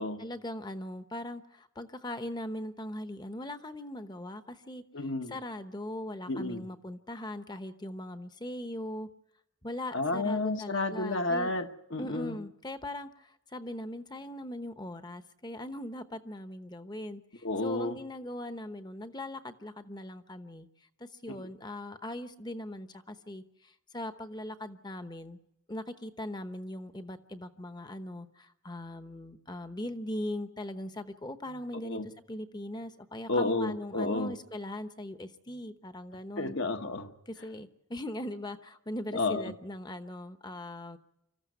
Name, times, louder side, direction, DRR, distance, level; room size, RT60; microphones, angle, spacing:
voice 1, 0.2-4.8 5.3-9.1 9.6-11.5 12.0-20.7 21.0-25.4 25.7-36.6 37.3-41.0, left 1 dB, 20° left, 9 dB, 0.9 m, -40 dB
voice 2, 4.9-5.3 6.3-6.6 9.9-12.4 17.4-18.0 21.3-21.4 31.8-32.1 33.3-34.3 36.4-37.1 39.1-39.5, left 2 dB, 60° left, 7 dB, 1.3 m, -31 dB
25.5 x 14.5 x 9.3 m, 0.84 s
head